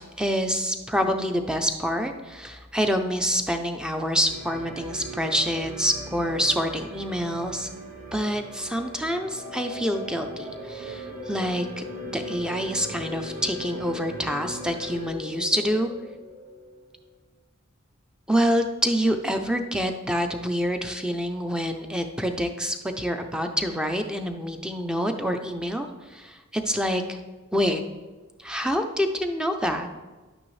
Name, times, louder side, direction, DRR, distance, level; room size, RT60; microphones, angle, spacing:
voice 1, 0.0-7.7 8.1-11.8 12.1-15.9 18.3-25.9 26.1-27.2 27.5-27.8 28.4-29.9, equal, 5° right, 6 dB, 0.5 m, -27 dB
sound 1, 4.3-15.0, right 2 dB, 70° right, 2.4 m, -40 dB
sound 2, 9.2-17.2, left 3 dB, 85° right, 3.5 m, -40 dB
10.5 x 8.7 x 3.2 m, 1.3 s
head